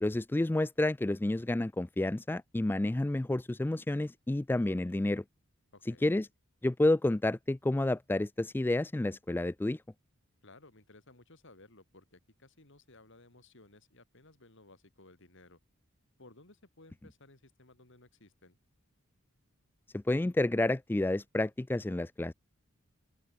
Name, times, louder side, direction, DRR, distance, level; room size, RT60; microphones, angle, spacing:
voice 1, 0.0-5.2 6.0-6.3 6.6-9.8 19.9-22.3, left 2 dB, 10° left, 0.3 m, -30 dB
voice 2, 5.7-6.1 10.4-15.6 16.2-18.6, left 2 dB, 60° left, 3.5 m, -58 dB
open air
head